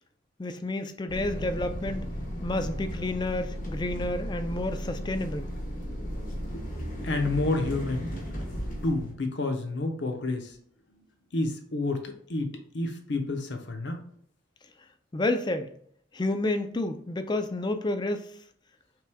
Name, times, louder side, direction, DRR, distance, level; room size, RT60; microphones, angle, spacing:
voice 1, 0.4-2.0 2.4-5.5 15.1-15.7 16.1-18.3, left 2 dB, 25° left, 0.4 m, -30 dB
Car door open key engine, 1.1-9.1, equal, 45° left, 1.1 m, -35 dB
voice 2, 7.0-8.1 8.8-10.6 10.9-11.0 11.3-14.0, left 2 dB, 65° left, 0.7 m, -30 dB
5.8 x 3.4 x 2.2 m
head